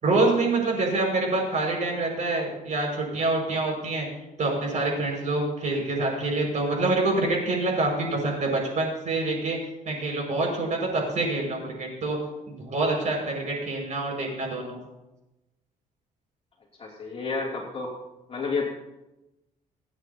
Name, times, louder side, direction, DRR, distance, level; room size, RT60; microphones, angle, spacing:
voice 1, 0.0-4.1 4.4-9.6 9.8-12.2 12.5-14.8, right 2 dB, 50° right, 0 dB, 5.7 m, -26 dB
voice 2, 16.8-17.9 18.3-18.6, left 4 dB, 35° left, -3 dB, 2.8 m, -30 dB
26.5 x 9.2 x 2.9 m, 0.98 s
cardioid pair, 110°, 16 cm